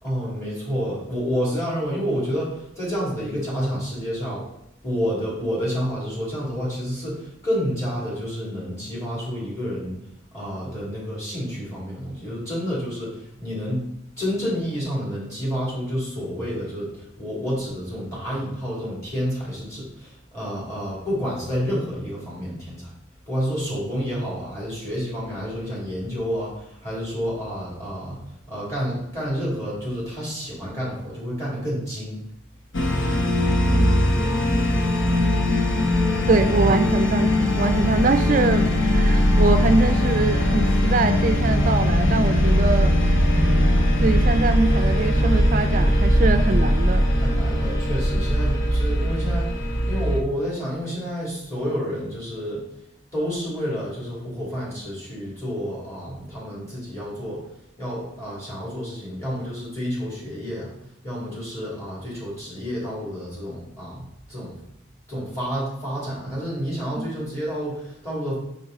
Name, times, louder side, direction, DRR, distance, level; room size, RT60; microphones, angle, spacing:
voice 1, 0.0-4.5 4.8-10.0 10.3-13.8 14.2-22.9 23.3-28.2 28.5-32.2 36.4-36.8 47.2-49.5 49.9-52.6 53.1-57.4 57.8-60.7 61.0-64.5 65.1-68.3, equal, 15° left, -7 dB, 2.6 m, -29 dB
sound 1, 32.7-50.2, left 1 dB, 75° left, 0.9 m, -20 dB
voice 2, 36.3-43.0 43.3-43.5 44.0-47.1 48.2-48.3 67.0-67.1, right 3 dB, 40° right, 9 dB, 0.4 m, -23 dB
5.3 x 5.2 x 3.9 m, 0.80 s
head